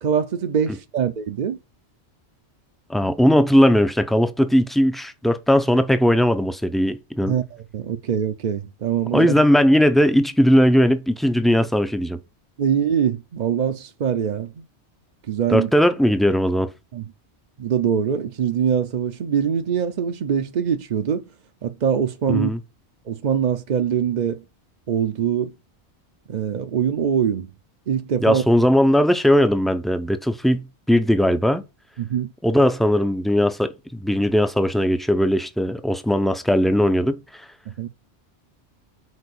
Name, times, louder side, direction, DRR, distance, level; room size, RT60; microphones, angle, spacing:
voice 1, 0.0-1.6 7.3-9.3 12.6-14.6 15.3-15.7 16.9-17.0 17.6-21.2 21.6-22.5 23.1-24.4 24.9-25.5 26.3-27.5 27.9-28.4 32.0-32.3 37.7-37.9, right 8 dB, 50° right, 0.6 m, -23 dB
voice 2, 2.9-7.4 9.1-12.2 15.5-16.7 22.3-22.6 28.2-31.6 32.4-37.4, equal, ahead, 0.4 m, -18 dB
6.5 x 4.6 x 6.6 m
omnidirectional pair, 1.2 m